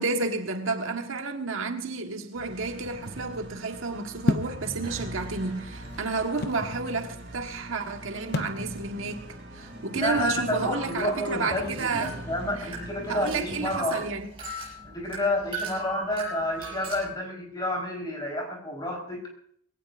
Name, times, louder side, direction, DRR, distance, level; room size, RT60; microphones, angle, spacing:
voice 1, 0.0-9.3 9.5-12.2 12.6-12.7 13.1-14.3, right 3 dB, 80° right, 1.4 m, -31 dB
sound 1, 2.3-13.8, right 1 dB, 50° right, 4.0 m, -41 dB
sound 2, 4.3-4.6 5.5-6.7 8.3-8.6, left 3 dB, 50° left, 0.7 m, -28 dB
sound 3, 9.6-17.1, right 2 dB, 25° right, 5.8 m, -41 dB
voice 2, 9.9-14.0 14.8-19.3, left 1 dB, 20° left, 4.1 m, -30 dB
21.5 x 17.0 x 2.6 m
head